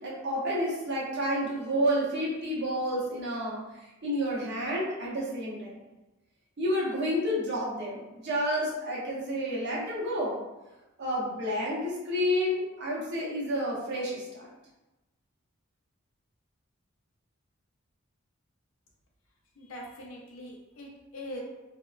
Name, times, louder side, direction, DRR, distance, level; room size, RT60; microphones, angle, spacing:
voice 1, 0.0-3.6 4.0-5.8 6.6-10.4 11.0-14.5, equal, 55° right, -5 dB, 0.7 m, -30 dB
voice 2, 19.6-21.4, left 1 dB, 85° left, -1 dB, 0.6 m, -42 dB
2.8 x 2.0 x 2.3 m, 1.0 s
head